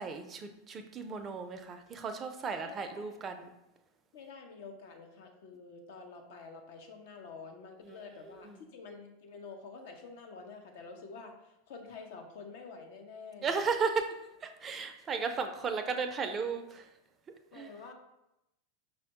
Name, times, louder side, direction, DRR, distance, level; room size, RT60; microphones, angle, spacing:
voice 1, 0.0-3.5 7.9-8.0 8.4-8.6 13.4-14.1 14.4-16.9 17.5-17.7, right 5 dB, 30° right, 7 dB, 0.4 m, -35 dB
voice 2, 2.6-3.1 4.1-13.5 17.5-17.9, left 4 dB, 65° left, 4 dB, 0.6 m, -48 dB
5.3 x 2.1 x 2.8 m, 0.89 s
hypercardioid pair, 95°, 0 cm